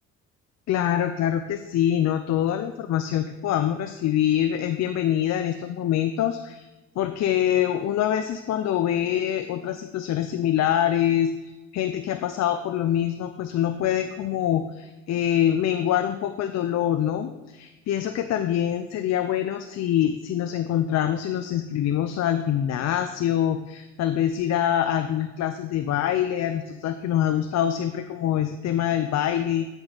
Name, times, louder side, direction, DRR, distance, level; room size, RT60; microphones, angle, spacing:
voice 1, 0.7-6.7 7.0-29.7, left 10 dB, 65° left, 8 dB, 0.6 m, -25 dB
12.5 x 5.4 x 4.0 m, 1.1 s
cardioid pair, 90°, 30 cm